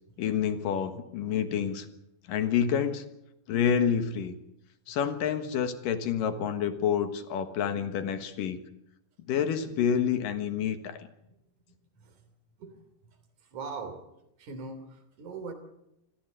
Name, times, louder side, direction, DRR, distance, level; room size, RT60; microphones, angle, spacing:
voice 1, 0.2-1.9 2.3-3.0 3.5-4.4 4.9-8.6 9.3-11.1, left 8 dB, 70° left, 9 dB, 3.0 m, -28 dB
voice 2, 13.5-14.0 14.4-15.5, right 4 dB, 55° right, 9 dB, 4.3 m, -40 dB
26.0 x 15.0 x 8.1 m, 0.84 s
omnidirectional pair, 4.3 m